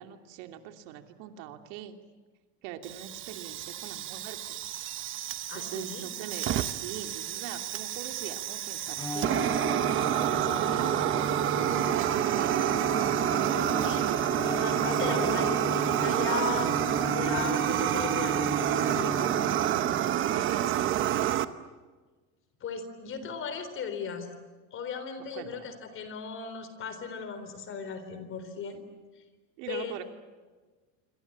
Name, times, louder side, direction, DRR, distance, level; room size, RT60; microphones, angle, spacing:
voice 1, 0.0-2.0 2.6-4.6 5.5-9.6 10.3-11.3 11.7-12.9 13.3-13.8 20.1-21.3 25.3-25.6 29.6-30.0, right 10 dB, 75° right, 6 dB, 2.9 m, -42 dB
Fire, 2.8-21.4, right 11 dB, 30° right, 0.9 m, -28 dB
voice 2, 5.5-6.0 13.5-14.0 14.5-16.7 17.1-19.2 22.6-24.3 24.7-28.8 29.7-30.0, left 6 dB, 30° left, 10 dB, 3.9 m, -37 dB
Bowed string instrument, 9.0-20.2, left 3 dB, 10° left, 1.2 m, -37 dB
27.0 x 25.5 x 8.7 m, 1.3 s
cardioid pair, 170°, 39 cm